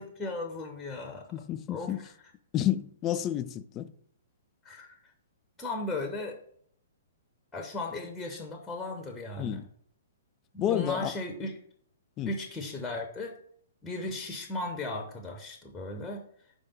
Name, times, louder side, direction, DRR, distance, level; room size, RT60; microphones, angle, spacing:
voice 1, 0.0-1.3 1.7-1.9 4.6-5.0 5.6-6.4 7.5-9.6 10.5-11.5 12.3-13.4 13.8-16.2, left 2 dB, 10° left, 0.8 m, -36 dB
voice 2, 1.3-2.0 2.5-3.9 9.4-9.7 10.6-11.1 12.2-12.3, left 11 dB, 25° left, 0.3 m, -30 dB
5.2 x 3.5 x 5.4 m
figure-of-eight pair, 115°, 0 cm